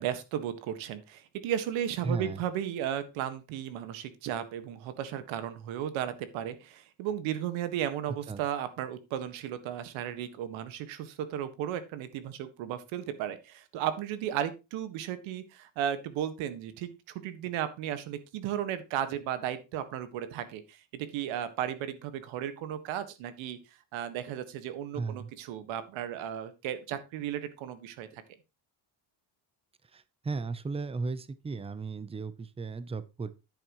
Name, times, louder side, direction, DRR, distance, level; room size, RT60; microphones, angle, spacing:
voice 1, 0.0-23.6 23.9-28.2, right 10 dB, 90° right, 11 dB, 1.7 m, -35 dB
voice 2, 2.0-2.4 8.3-8.4 24.9-25.3 29.9-33.3, right 4 dB, 15° right, 15 dB, 0.6 m, -35 dB
10.5 x 9.1 x 3.1 m, 0.26 s
cardioid pair, 135°, 45 cm